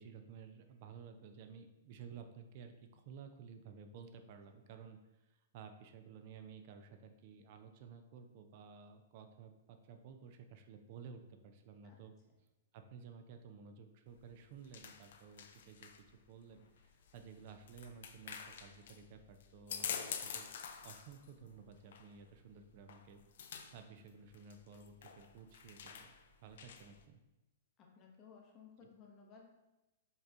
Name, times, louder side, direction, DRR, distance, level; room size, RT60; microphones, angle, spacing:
voice 1, 0.0-5.0 5.3-12.1 12.7-20.5 20.8-26.2 26.4-27.2, right 6 dB, 45° right, 6 dB, 0.4 m, -54 dB
sound 1, 14.1-27.0, left 7 dB, 60° left, 0.3 m, -48 dB
voice 2, 27.8-29.5, left 6 dB, 30° left, 0 dB, 0.7 m, -59 dB
5.2 x 3.3 x 2.5 m, 1.0 s
figure-of-eight pair, 110°, 0 cm